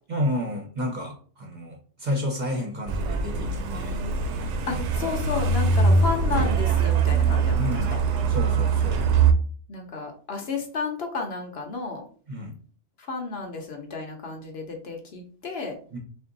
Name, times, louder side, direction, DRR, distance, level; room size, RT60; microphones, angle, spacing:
voice 1, 0.1-4.0 5.0-5.2 7.6-7.9 8.3-9.0 12.3-12.6 15.9-16.0, left 1 dB, 40° right, 0 dB, 0.9 m, -31 dB
Truck, 2.9-9.3, right 4 dB, 70° right, 0.9 m, -22 dB
voice 2, 4.7-7.8 9.7-12.0 13.0-15.8, left 4 dB, 60° left, 3 dB, 1.0 m, -32 dB
3.6 x 2.5 x 3.9 m, 0.43 s
omnidirectional pair, 1.3 m